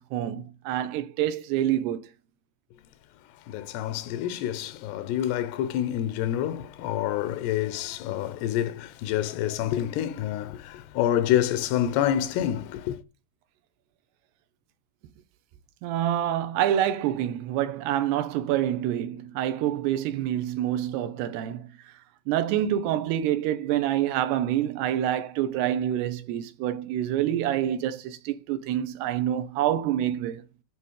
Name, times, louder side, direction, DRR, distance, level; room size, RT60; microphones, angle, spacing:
voice 1, 0.0-2.1 15.8-21.9 22.3-30.4, right 11 dB, 85° right, 3.0 m, -27 dB
voice 2, 3.5-13.0, left 11 dB, 90° left, 3.0 m, -27 dB
10.5 x 4.2 x 6.5 m
omnidirectional pair, 4.6 m